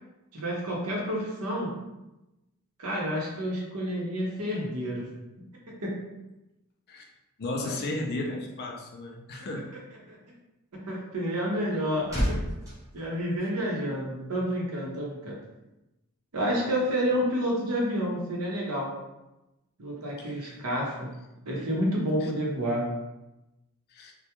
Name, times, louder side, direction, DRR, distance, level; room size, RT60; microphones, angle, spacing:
voice 1, 0.3-1.7 2.8-5.1 5.8-6.0 7.6-7.7 10.1-10.2 10.7-12.2 12.9-15.4 16.3-18.9 19.8-21.1 21.5-22.9, equal, 75° right, -2 dB, 0.7 m, -29 dB
voice 2, 7.4-9.7 20.2-20.6 22.2-22.3 23.9-24.1, left 2 dB, 45° left, 1 dB, 0.3 m, -35 dB
sound 1, 11.6-14.0 14.3-14.6, equal, 15° right, 0.8 m, -33 dB
2.2 x 2.1 x 2.9 m, 0.96 s
head